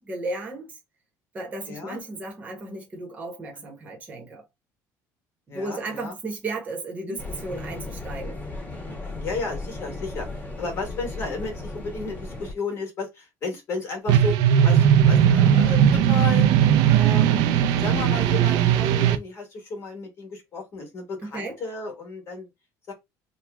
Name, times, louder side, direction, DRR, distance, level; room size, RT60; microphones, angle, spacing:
voice 1, 0.1-0.7 1.3-4.4 5.5-8.4 21.3-21.6, right 2 dB, 20° right, 1.2 m, -34 dB
voice 2, 1.7-2.0 3.6-3.7 5.5-6.2 7.0-7.2 8.9-10.3 10.6-16.5 16.8-17.4 17.8-22.5 22.9-23.0, left 3 dB, 40° left, 1.5 m, -33 dB
sound 1, 7.2-12.5, left 2 dB, 20° left, 1.5 m, -35 dB
sound 2, 14.1-19.2, right 9 dB, 85° right, 0.5 m, -18 dB
3.1 x 2.3 x 3.4 m
cardioid pair, 170°, 7 cm